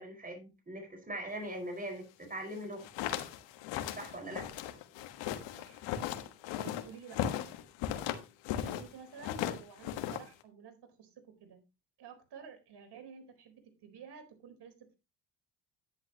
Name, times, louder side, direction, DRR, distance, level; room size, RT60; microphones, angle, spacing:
voice 1, 0.0-2.9 4.0-4.5 8.6-8.7, right 1 dB, 20° right, 3 dB, 4.9 m, -41 dB
sound 1, 2.6-8.9 9.2-10.4, left 11 dB, 90° left, 1.4 m, -37 dB
voice 2, 6.5-7.3 8.6-11.6 12.0-15.0, right 6 dB, 65° right, 6 dB, 4.2 m, -51 dB
11.0 x 10.0 x 2.9 m, 0.27 s
cardioid pair, 80°, 44 cm